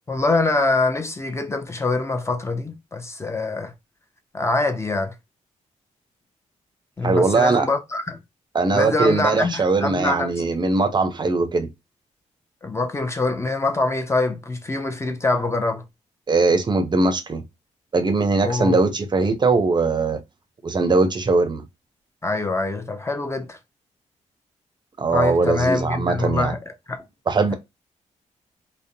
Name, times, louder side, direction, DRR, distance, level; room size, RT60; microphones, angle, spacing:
voice 1, 0.1-3.7 4.3-5.1 7.0-8.2 8.7-10.3 12.6-15.8 18.4-18.8 22.2-23.6 25.1-26.6 26.9-27.0, left 2 dB, 20° left, 0.5 m, -24 dB
voice 2, 7.0-7.7 8.5-11.7 16.3-17.4 17.9-20.2 20.6-21.6 25.0-26.5 27.3-27.5, right 3 dB, 35° right, 0.5 m, -20 dB
2.5 x 2.1 x 2.6 m
cardioid pair, 75°, 13 cm